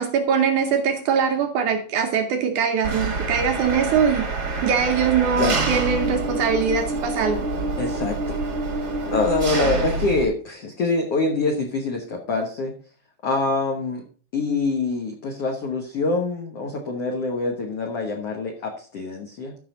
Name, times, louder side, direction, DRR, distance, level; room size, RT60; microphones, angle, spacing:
voice 1, 0.0-4.3 4.6-7.4, right 6 dB, 75° right, 4 dB, 1.8 m, -22 dB
Engine, 2.8-10.2, right 3 dB, 45° right, 1.3 m, -26 dB
voice 2, 7.8-8.4 9.1-12.7 13.2-14.0 14.3-19.5, left 3 dB, 70° left, 1 dB, 1.4 m, -25 dB
14.0 x 5.8 x 3.9 m, 0.42 s
omnidirectional pair, 4.8 m